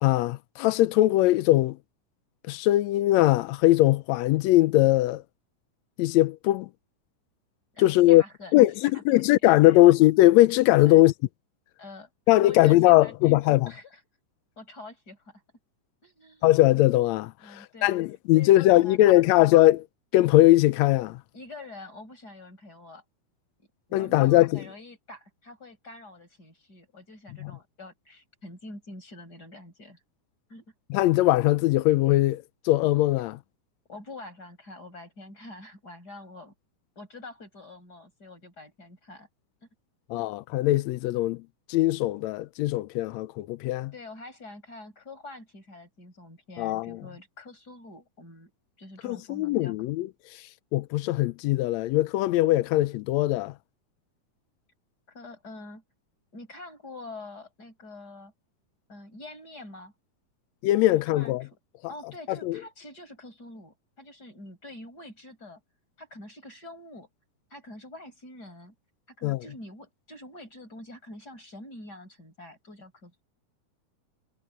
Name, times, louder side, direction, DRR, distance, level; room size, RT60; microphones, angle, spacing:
voice 1, 0.0-1.8 2.5-5.2 6.0-6.7 7.8-8.2 8.5-11.1 12.3-13.7 16.4-19.8 20.1-21.2 23.9-24.6 27.4-27.5 30.9-33.4 40.1-41.4 41.7-43.9 46.6-47.0 49.0-53.5 60.6-61.4 62.4-62.6 69.2-69.4, left 16 dB, 85° left, 1.6 m, -21 dB
voice 2, 7.7-8.5 8.8-9.8 10.9-11.0 11.8-12.1 12.4-13.4 13.7-14.0 14.6-15.4 16.0-16.5 17.4-18.0 18.3-19.5 21.3-23.0 23.9-30.0 30.5-30.6 33.9-36.5 37.0-39.3 40.1-40.2 43.9-48.5 48.8-49.8 55.1-55.8 56.3-58.3 58.9-59.9 60.8-61.6 61.9-65.6 66.0-67.1 67.5-68.7 69.1-73.2, left 2 dB, 30° left, 7.1 m, -46 dB
omnidirectional pair, 3.7 m